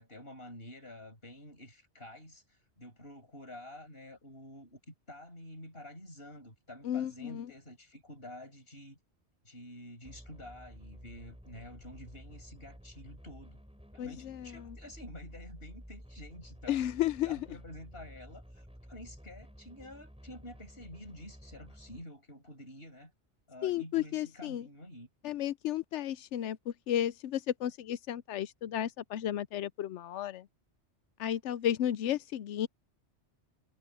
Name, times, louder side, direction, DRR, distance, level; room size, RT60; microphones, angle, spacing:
voice 1, 0.0-9.0 9.4-13.6 13.9-23.1 23.5-25.1, left 1 dB, 55° left, 7.7 m, -49 dB
voice 2, 6.8-7.5 14.0-14.8 16.7-17.5 23.6-24.7 25.2-30.5 31.2-32.7, left 11 dB, 85° left, 0.9 m, -33 dB
sound 1, 10.0-22.0, equal, 5° right, 5.7 m, -52 dB
omnidirectional pair, 1.2 m